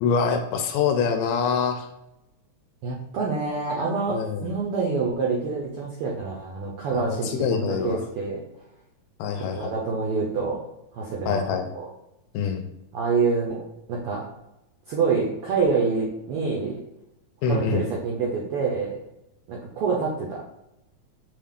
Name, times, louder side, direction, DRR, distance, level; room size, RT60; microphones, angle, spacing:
voice 1, 0.0-1.9 4.1-4.5 6.9-8.0 9.2-9.8 11.3-11.7 12.3-12.7 17.4-17.9, left 6 dB, 80° left, 6 dB, 1.8 m, -25 dB
voice 2, 2.8-8.4 9.4-10.6 10.9-11.4 11.7-11.9 12.9-13.6 13.9-14.2 14.9-16.8 17.5-19.0 19.5-20.4, right 4 dB, 80° right, -2 dB, 1.3 m, -26 dB
6.2 x 2.3 x 3.6 m, 0.89 s
omnidirectional pair, 3.4 m